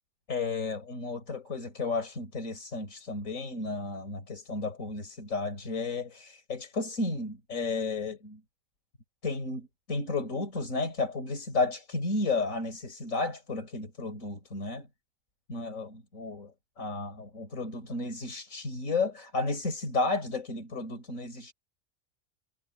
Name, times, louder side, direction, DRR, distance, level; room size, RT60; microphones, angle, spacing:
voice 1, 0.3-8.4 9.2-14.9 15.5-16.5 16.8-21.5, left 3 dB, 70° left, 4.4 m, -33 dB
omnidirectional pair, 1.4 m